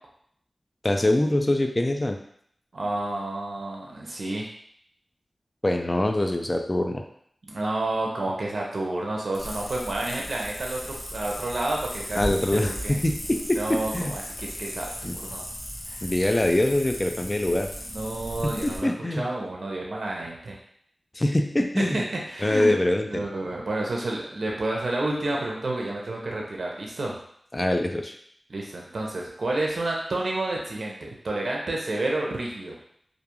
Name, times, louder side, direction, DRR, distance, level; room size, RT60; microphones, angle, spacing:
voice 1, 0.8-2.2 5.6-7.0 12.2-14.2 15.0-15.1 16.0-17.7 18.4-19.3 21.1-22.0 22.4-23.2 27.5-28.1, left 1 dB, 30° left, 4 dB, 0.3 m, -24 dB
voice 2, 2.7-4.5 7.5-13.0 13.6-15.5 15.9-16.0 17.9-20.6 21.8-22.8 23.1-27.2 28.5-32.8, right 2 dB, 80° right, -1 dB, 0.5 m, -30 dB
sound 1, 9.3-18.8, equal, 45° left, 0.8 m, -36 dB
2.4 x 2.2 x 3.0 m, 0.67 s
wide cardioid pair, 60°, 0 cm